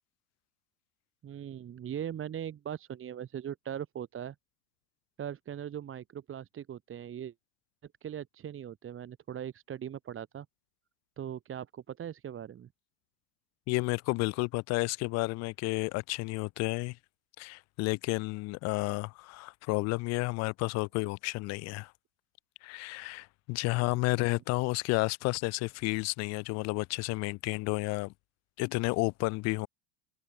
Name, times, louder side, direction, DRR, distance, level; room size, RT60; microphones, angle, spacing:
voice 1, 1.2-4.3 5.2-7.3 8.0-10.5 11.2-12.7 23.8-24.4, right 9 dB, 25° right, 1.3 m, -40 dB
voice 2, 13.7-17.0 17.4-21.9 22.6-28.1 28.6-29.7, left 24 dB, 35° left, 0.4 m, -31 dB
hypercardioid pair, 95°, 47 cm